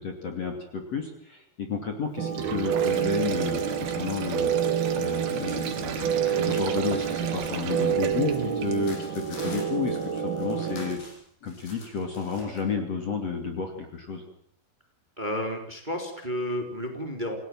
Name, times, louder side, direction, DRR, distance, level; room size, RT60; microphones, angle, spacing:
voice 1, 0.0-4.5 4.9-11.0 11.4-14.2, left 5 dB, 40° left, 4 dB, 3.4 m, -32 dB
sound 1, 2.2-11.0, right 8 dB, 65° right, 1.2 m, -28 dB
Sink (filling or washing), 2.2-9.1, right 8 dB, 80° right, 4.2 m, -36 dB
sound 2, 3.6-4.5 4.8-12.6, left 2 dB, 55° left, 8.7 m, -48 dB
voice 2, 15.2-17.4, equal, 10° right, 4 dB, 3.6 m, -31 dB
28.0 x 18.0 x 7.7 m, 0.63 s
omnidirectional pair, 4.9 m